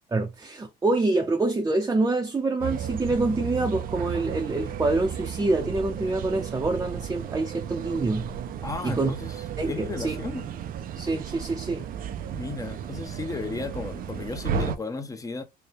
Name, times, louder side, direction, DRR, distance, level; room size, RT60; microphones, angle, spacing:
voice 1, 0.1-8.3 8.8-9.1 9.6-10.2 11.0-11.9, right 2 dB, 20° right, 0.7 m, -26 dB
sound 1, 2.6-14.8, right 8 dB, 55° right, 0.5 m, -34 dB
voice 2, 8.6-9.4 9.7-10.5 12.4-15.4, left 4 dB, 20° left, 0.8 m, -34 dB
3.4 x 2.2 x 4.3 m
cardioid pair, 110°, 17 cm